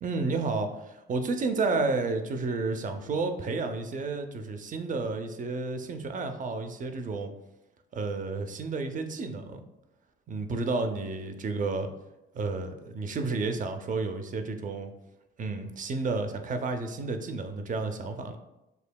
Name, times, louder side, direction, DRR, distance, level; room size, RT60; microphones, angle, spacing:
voice 1, 0.0-7.3 7.9-9.6 10.3-11.9 12.3-14.9 15.4-18.4, right 3 dB, 40° right, 7 dB, 0.5 m, -31 dB
6.6 x 2.8 x 2.2 m, 0.93 s
cardioid pair, 90°, 20 cm